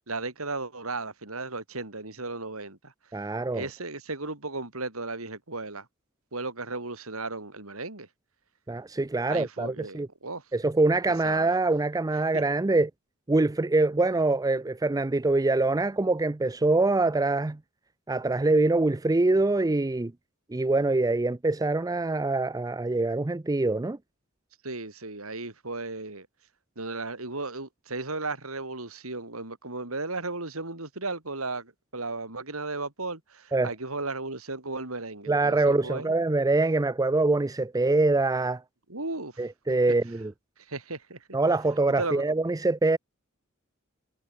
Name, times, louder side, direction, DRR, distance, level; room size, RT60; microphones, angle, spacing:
voice 1, 0.0-2.9 3.5-5.9 6.3-8.1 9.3-10.4 11.2-11.6 12.3-12.4 24.6-26.3 26.8-36.1 38.9-39.7 40.7-41.2 42.0-42.2, right 3 dB, 80° right, 4.7 m, -35 dB
voice 2, 3.1-3.7 8.7-10.1 10.5-12.9 13.3-17.6 18.1-20.1 20.5-24.0 33.5-33.7 35.3-38.6 39.4-40.3 41.3-43.0, right 2 dB, 15° right, 0.5 m, -24 dB
head